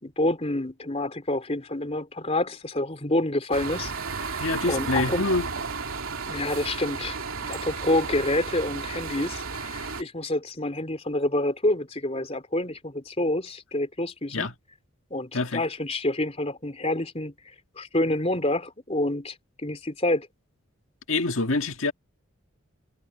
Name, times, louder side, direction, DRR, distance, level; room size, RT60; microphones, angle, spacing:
voice 1, 0.0-3.9 4.2-5.2 6.3-14.5 15.1-17.3 17.8-19.4 19.6-20.3, left 1 dB, 30° left, 3.5 m, -28 dB
sound 1, 3.5-10.0, right 4 dB, 90° right, 2.8 m, -33 dB
voice 2, 4.4-5.5 14.3-14.5 15.3-15.6 21.1-21.9, left 2 dB, 75° left, 1.8 m, -26 dB
head